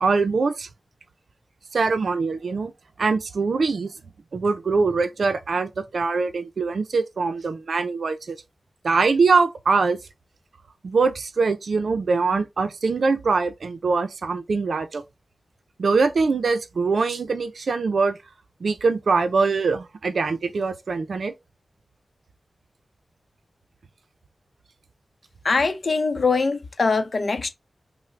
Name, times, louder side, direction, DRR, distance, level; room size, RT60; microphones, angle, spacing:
voice 1, 0.0-0.7 1.7-2.7 3.0-3.9 4.3-8.4 8.8-10.0 10.8-15.0 15.8-18.2 18.6-21.3, right 4 dB, 85° right, 0.5 m, -23 dB
voice 2, 25.4-27.5, left 4 dB, 60° left, 0.6 m, -22 dB
5.7 x 2.1 x 3.2 m
wide cardioid pair, 85°, 0 cm